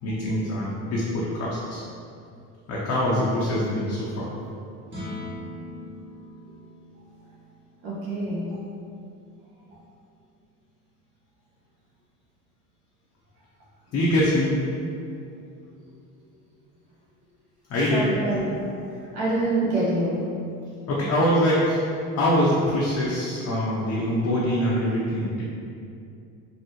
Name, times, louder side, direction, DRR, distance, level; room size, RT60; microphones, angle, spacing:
voice 1, 0.0-1.8 2.7-4.3 13.9-14.6 17.7-18.1 20.9-21.8 22.2-25.5, equal, 50° left, -6 dB, 0.6 m, -24 dB
sound 1, 4.8-11.2, left 1 dB, 35° right, 1.2 m, -43 dB
voice 2, 7.8-8.5 17.9-18.4 19.1-20.2, right 2 dB, 75° right, -7 dB, 1.2 m, -25 dB
3.7 x 2.0 x 2.7 m, 2.5 s
supercardioid pair, 80°, 35 cm